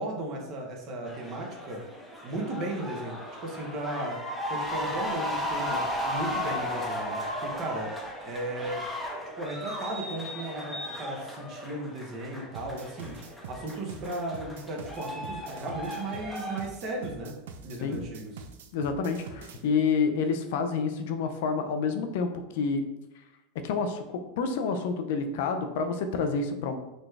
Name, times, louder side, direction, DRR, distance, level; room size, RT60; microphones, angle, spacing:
voice 1, 0.0-4.2 4.5-8.0 8.2-8.9 9.4-13.2 13.5-17.3 17.6-18.4, right 1 dB, 45° right, 0 dB, 0.9 m, -36 dB
sound 1, 1.1-16.6, equal, ahead, 0.7 m, -35 dB
sound 2, 12.5-19.6, right 5 dB, 85° right, 0.4 m, -44 dB
voice 2, 18.7-22.8 23.6-26.8, left 5 dB, 70° left, 7 dB, 0.4 m, -28 dB
4.0 x 2.3 x 3.2 m, 0.96 s
supercardioid pair, 125°, 0 cm